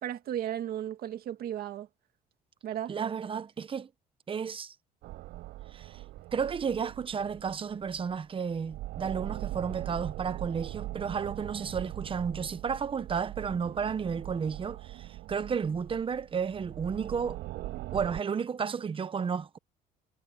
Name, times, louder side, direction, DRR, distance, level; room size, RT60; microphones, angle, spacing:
voice 1, 0.0-1.9 2.6-2.9, right 10 dB, 65° right, 2.0 m, -35 dB
voice 2, 2.9-3.9 4.3-4.7 5.7-6.0 6.3-17.4 17.9-19.6, right 6 dB, 30° right, 1.0 m, -32 dB
sound 1, 5.0-8.2 8.5-18.2, right 16 dB, 85° right, 5.5 m, -41 dB
cardioid pair, 110°, 17 cm